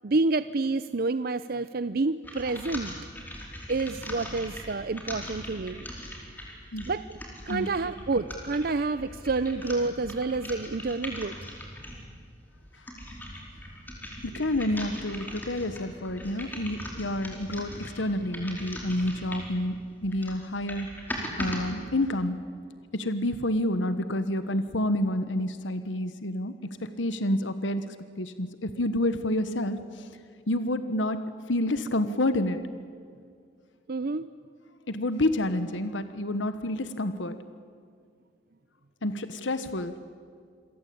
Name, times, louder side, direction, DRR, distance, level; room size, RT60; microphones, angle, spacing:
voice 1, 0.0-2.9 3.7-5.9 6.9-7.2 7.5-11.3 33.9-34.3, right 3 dB, 55° right, 14 dB, 0.6 m, -28 dB
sound 1, 2.2-12.1 12.6-19.6 20.0-21.6, equal, 10° left, 4.8 m, -40 dB
voice 2, 14.2-19.8 20.0-20.9 21.4-22.4 22.9-30.1 30.5-31.2 31.5-32.6 34.9-37.4 39.0-39.9, left 1 dB, 85° left, 11 dB, 1.3 m, -29 dB
28.5 x 22.5 x 8.6 m, 2.2 s
head